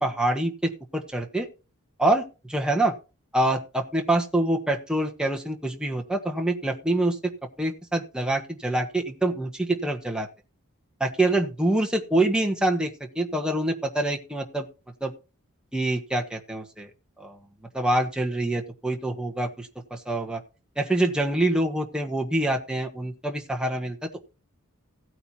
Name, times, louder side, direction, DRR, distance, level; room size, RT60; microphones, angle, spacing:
voice 1, 0.0-1.5 2.0-2.2 2.5-2.9 3.3-7.3 7.6-10.3 11.0-14.7 15.0-15.1 15.7-16.9 17.2-17.4 17.7-20.4 20.8-24.0, right 1 dB, 5° right, 1 dB, 1.4 m, -25 dB
16.0 x 8.9 x 2.9 m, 0.31 s
head